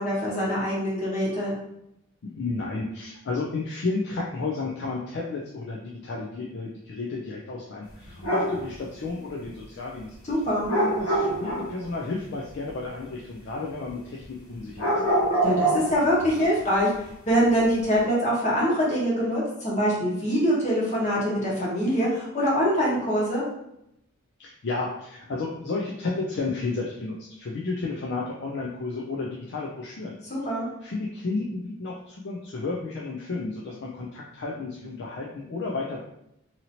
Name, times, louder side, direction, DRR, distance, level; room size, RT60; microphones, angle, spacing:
voice 1, 0.0-1.5 10.3-10.7 15.4-16.9 17.3-23.4 30.3-30.7, equal, 35° left, -6 dB, 1.2 m, -24 dB
voice 2, 2.2-10.1 10.7-14.9 24.4-30.2 30.8-36.0, left 3 dB, 55° left, -2 dB, 0.4 m, -32 dB
sound 1, 8.1-8.7 10.7-11.7 14.7-16.6, right 1 dB, 70° left, 1.2 m, -25 dB
2.8 x 2.8 x 2.7 m, 0.80 s
head